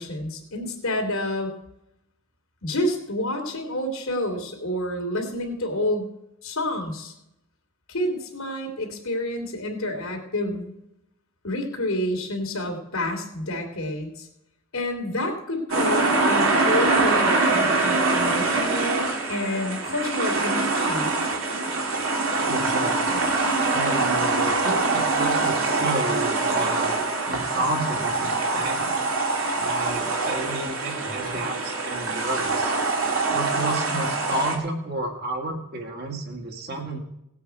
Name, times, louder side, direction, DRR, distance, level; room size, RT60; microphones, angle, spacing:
voice 1, 0.0-1.5 2.6-6.1 6.4-7.1 7.9-10.7 11.4-14.3 14.7-21.1, left 1 dB, 85° left, 3 dB, 2.8 m, -29 dB
sound 1, 15.7-34.6, right 3 dB, 75° right, 2.0 m, -24 dB
voice 2, 22.5-23.3 23.7-27.0 27.3-29.0 29.6-32.7 33.3-37.0, right 2 dB, 50° right, 2 dB, 2.0 m, -31 dB
18.0 x 8.4 x 4.6 m, 0.84 s
head